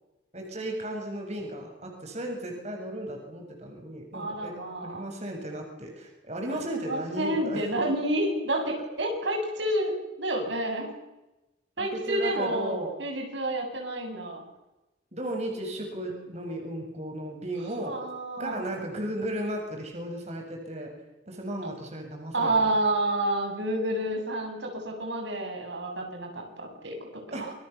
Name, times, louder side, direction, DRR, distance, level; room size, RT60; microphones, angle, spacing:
voice 1, 0.3-4.5 4.8-7.6 11.8-12.9 15.1-18.0 18.4-20.9 21.3-22.7 27.3-27.5, right 1 dB, 40° right, 2 dB, 7.3 m, -35 dB
voice 2, 4.1-5.0 6.5-10.9 11.8-14.5 17.8-18.7 22.3-27.5, right 1 dB, 80° right, 3 dB, 7.9 m, -29 dB
28.0 x 26.5 x 7.3 m, 0.98 s
head